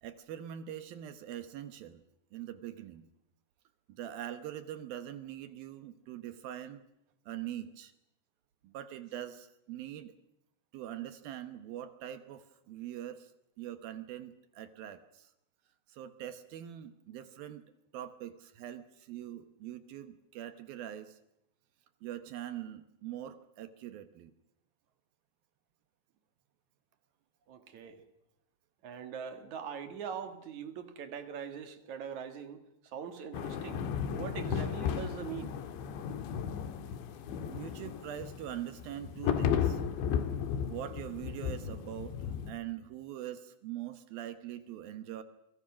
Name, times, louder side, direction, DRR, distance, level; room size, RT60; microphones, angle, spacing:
voice 1, 0.0-2.0 2.3-3.1 3.9-6.9 7.3-7.9 8.6-10.2 10.7-13.3 13.6-15.3 15.9-17.6 17.9-21.2 22.0-24.3 37.4-39.8 40.6-45.2, right 11 dB, 70° right, 11 dB, 2.6 m, -43 dB
voice 2, 27.5-28.0 28.8-33.9 34.1-35.5, right 7 dB, 50° right, 8 dB, 2.9 m, -42 dB
sound 1, 33.3-42.5, left 8 dB, 85° left, 4.0 m, -34 dB
29.5 x 23.5 x 6.3 m, 0.81 s
omnidirectional pair, 5.0 m